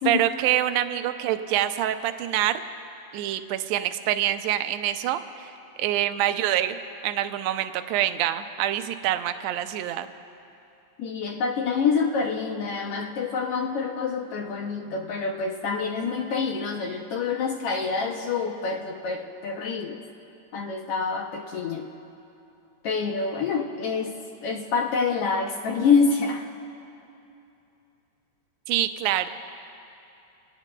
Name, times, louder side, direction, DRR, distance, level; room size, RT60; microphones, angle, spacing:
voice 1, 0.0-2.6 3.1-5.5 5.8-6.8 7.0-10.1 28.7-29.3, right 12 dB, 75° right, 9 dB, 1.7 m, -25 dB
voice 2, 11.0-20.0 20.5-21.9 22.8-24.2 24.4-26.5, left 5 dB, 75° left, 2 dB, 1.4 m, -26 dB
25.5 x 18.0 x 2.2 m, 2.8 s
omnidirectional pair, 3.4 m